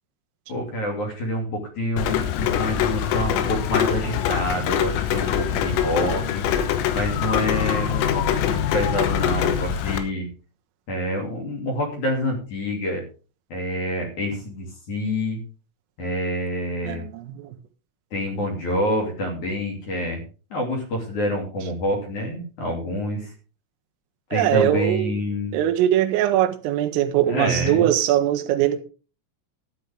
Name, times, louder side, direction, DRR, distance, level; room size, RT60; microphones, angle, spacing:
voice 1, 0.5-10.3 10.9-13.0 13.5-15.4 16.0-17.0 18.1-20.2 20.5-23.3 24.3-25.5 27.3-27.9, left 1 dB, 45° left, 3.6 m, -27 dB
Rain, 2.0-10.0, left 9 dB, 90° left, 3.8 m, -24 dB
voice 2, 16.9-17.6 24.3-25.1 25.5-28.8, right 11 dB, 85° right, 3.5 m, -21 dB
13.5 x 10.0 x 3.6 m
omnidirectional pair, 5.9 m